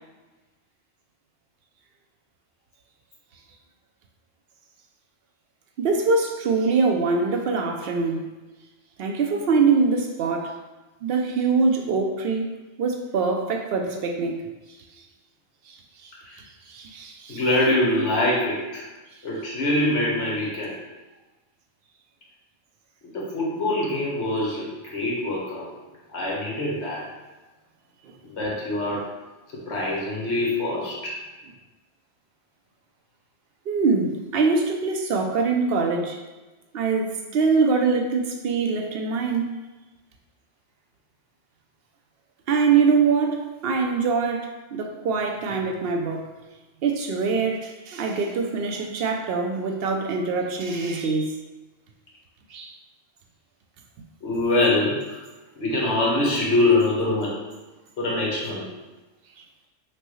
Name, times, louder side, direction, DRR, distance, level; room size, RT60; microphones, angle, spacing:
voice 1, 5.8-8.3 9.0-10.6 11.0-12.5 12.8-14.4 15.7-15.8 16.0-16.1 16.7-17.4 28.1-28.2 33.7-36.2 36.7-39.5 42.5-46.2 46.8-51.4 52.5-52.7, right 4 dB, 60° right, 2 dB, 0.7 m, -23 dB
voice 2, 17.3-18.8 19.2-20.7 23.1-25.7 26.1-27.0 28.2-29.1 29.5-31.2 54.2-55.2 55.6-57.4 58.0-58.7, left 2 dB, 65° left, -4 dB, 1.3 m, -24 dB
5.9 x 2.3 x 3.0 m, 1.1 s
omnidirectional pair, 1.3 m